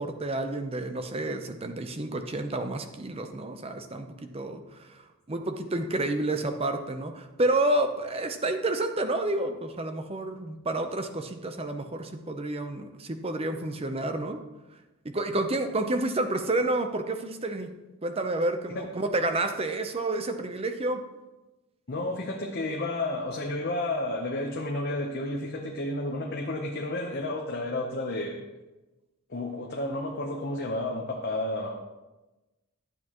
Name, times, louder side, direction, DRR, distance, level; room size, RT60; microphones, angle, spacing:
voice 1, 0.0-14.4 15.0-17.7 18.0-21.0, right 2 dB, 25° right, 7 dB, 0.6 m, -30 dB
voice 2, 21.9-28.5 29.3-31.8, left 2 dB, 45° left, 0 dB, 0.8 m, -31 dB
12.0 x 8.3 x 3.0 m, 1.1 s
head